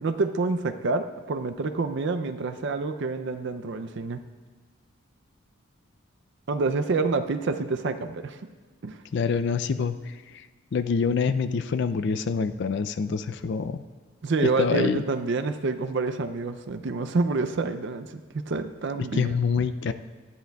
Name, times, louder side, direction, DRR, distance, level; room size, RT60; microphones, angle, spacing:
voice 1, 0.0-4.2 6.5-8.4 8.8-9.0 14.2-19.3, right 3 dB, 55° right, 9 dB, 0.5 m, -28 dB
voice 2, 9.1-10.5 10.7-13.8 14.4-15.0 19.0-19.9, left 5 dB, 55° left, 10 dB, 0.4 m, -26 dB
18.0 x 12.5 x 2.3 m, 1.4 s
head